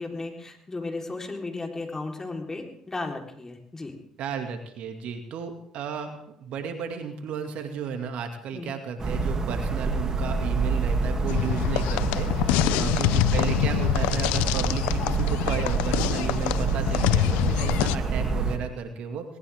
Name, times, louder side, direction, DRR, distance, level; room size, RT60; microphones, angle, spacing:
voice 1, 0.0-3.9 8.5-8.7 12.6-12.9 17.8-18.0, left 3 dB, 25° left, 2 dB, 3.9 m, -35 dB
voice 2, 4.2-19.2, right 6 dB, 65° right, 5 dB, 2.3 m, -34 dB
sound 1, 9.0-18.6, right 4 dB, 35° right, 2.6 m, -27 dB
sound 2, 11.3-18.0, left 15 dB, 80° left, 0.6 m, -25 dB
19.5 x 19.0 x 3.6 m, 0.72 s
hypercardioid pair, 65°, 2 cm